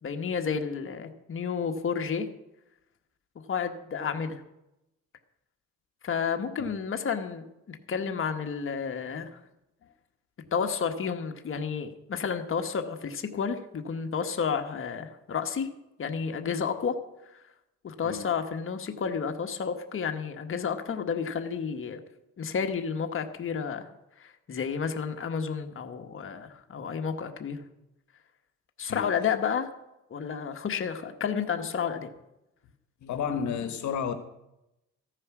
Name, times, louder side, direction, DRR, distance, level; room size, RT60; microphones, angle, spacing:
voice 1, 0.0-2.3 3.5-4.4 6.0-9.4 10.5-15.7 16.0-17.0 17.8-22.0 22.4-23.8 24.2-27.6 28.8-29.7 30.1-32.1, left 6 dB, 45° left, 5 dB, 1.4 m, -31 dB
voice 2, 33.0-34.1, left 7 dB, 70° left, 8 dB, 1.2 m, -31 dB
14.5 x 9.7 x 6.1 m, 0.90 s
cardioid pair, 90°, 30 cm